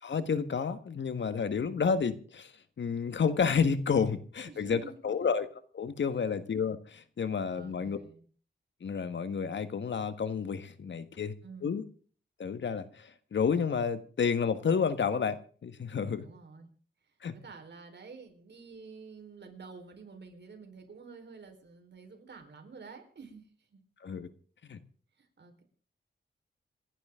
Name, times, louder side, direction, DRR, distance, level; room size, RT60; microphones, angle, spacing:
voice 1, 0.0-2.5 2.8-5.5 5.7-8.0 8.8-11.3 11.6-11.8 12.4-16.2 17.2-17.3 24.0-24.3 24.6-24.8, left 6 dB, 70° left, 11 dB, 1.6 m, -30 dB
voice 2, 4.5-5.3 7.5-8.2 11.4-11.8 16.1-16.7 17.0-23.8 25.2-25.6, right 4 dB, 65° right, 5 dB, 4.3 m, -50 dB
27.5 x 11.5 x 3.8 m, 0.43 s
wide cardioid pair, 80°, 19 cm